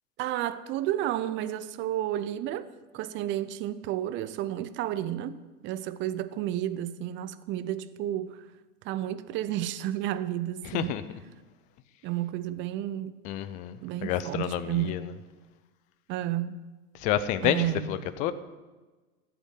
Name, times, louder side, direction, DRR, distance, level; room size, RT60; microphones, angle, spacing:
voice 1, 0.2-2.7 2.9-5.4 5.6-8.4 8.8-10.9 12.0-13.1 13.8-15.0 16.1-16.6 17.4-18.1, right 12 dB, 25° right, 0.6 m, -31 dB
voice 2, 10.6-11.2 13.2-15.1 17.0-18.3, left 11 dB, 20° left, 0.4 m, -30 dB
13.0 x 8.0 x 8.0 m
figure-of-eight pair, 95°, 46 cm